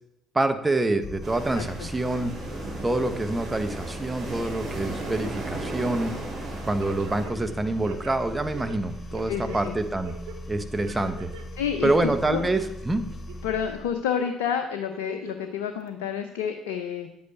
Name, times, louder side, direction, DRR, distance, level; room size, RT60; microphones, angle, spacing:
voice 1, 0.3-2.3 2.8-6.1 6.6-10.1 10.5-11.3 11.8-13.0, right 2 dB, 15° right, 8 dB, 1.3 m, -26 dB
sound 1, 1.0-14.0, left 1 dB, 30° left, 3.1 m, -40 dB
sound 2, 1.2-7.3, right 2 dB, 40° right, 4.7 m, -36 dB
sound 3, 6.8-7.5 7.8-9.6 10.0-10.4 10.9-11.4 11.8-12.7 13.1-13.7 14.2-14.3 14.9-15.5 15.9-16.0, right 6 dB, 70° right, 1.1 m, -42 dB
voice 2, 9.3-9.7 11.6-11.9 12.3-12.4 13.4-17.1, left 8 dB, 75° left, 7 dB, 0.7 m, -29 dB
10.0 x 8.5 x 4.5 m, 0.81 s
hypercardioid pair, 55°, 0 cm